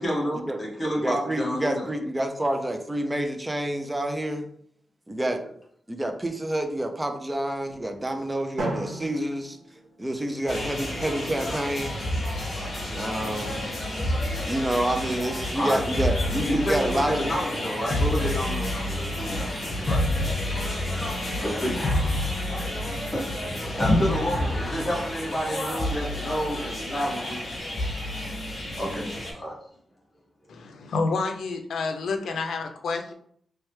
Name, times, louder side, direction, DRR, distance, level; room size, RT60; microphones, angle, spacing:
voice 1, 0.0-1.9 15.5-15.8 16.5-20.0 21.4-21.8 23.1-27.4 28.8-29.5, equal, 15° left, -5 dB, 1.1 m, -29 dB
voice 2, 1.0-4.5 5.1-5.4 5.9-9.6 10.0-12.0 13.0-13.6 14.5-17.3, right 1 dB, 10° right, 6 dB, 0.4 m, -28 dB
Drum, 8.6-10.5, right 2 dB, 80° right, 1.2 m, -35 dB
sound 1, 10.5-29.3, left 1 dB, 45° left, 1.5 m, -29 dB
voice 3, 30.5-33.1, left 4 dB, 80° left, 5 dB, 0.5 m, -29 dB
3.3 x 3.2 x 3.2 m, 0.65 s
wide cardioid pair, 170°, 0 cm